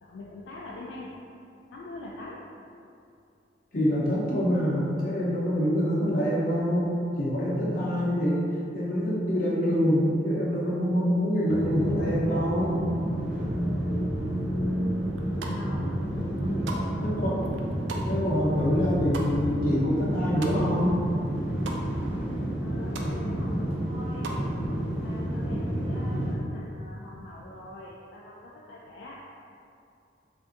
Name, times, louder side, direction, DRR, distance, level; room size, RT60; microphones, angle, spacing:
voice 1, 0.0-1.1 1.7-2.4 14.5-15.1 15.5-16.1 16.4-17.0 22.6-24.3 25.0-29.2, left 2 dB, 75° left, -4 dB, 0.3 m, -44 dB
voice 2, 3.7-8.4 8.7-12.8 17.0-17.4 18.1-21.0, equal, 50° left, -7 dB, 0.8 m, -25 dB
sound 1, 11.5-26.3, equal, 5° right, 0.5 m, -30 dB
sound 2, 15.2-15.8 16.2-21.0 21.2-21.8 22.2-22.3 22.5-23.1 23.5-24.5, right 3 dB, 70° right, 0.3 m, -40 dB
3.4 x 2.6 x 2.5 m, 2.5 s
head